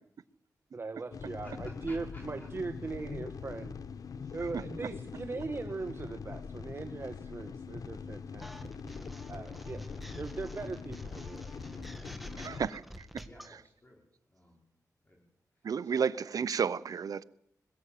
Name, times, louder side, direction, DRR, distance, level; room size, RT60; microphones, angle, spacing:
voice 1, 0.7-3.7 4.3-8.5 9.3-9.8 10.2-11.5, right 3 dB, 40° right, 1.3 m, -39 dB
sound 1, 1.1-12.7, left 6 dB, 70° left, 0.8 m, -43 dB
voice 2, 1.4-2.5 2.8-3.2 9.3-9.6 12.0-12.5 13.2-14.0 14.3-14.6 15.0-15.2 15.5-16.0, left 1 dB, 30° left, 4.7 m, -56 dB
sound 2, 8.4-13.5, equal, ahead, 1.6 m, -48 dB
voice 3, 12.4-13.2 15.6-17.2, right 6 dB, 70° right, 0.8 m, -32 dB
21.0 x 15.0 x 8.5 m
wide cardioid pair, 100°, 6 cm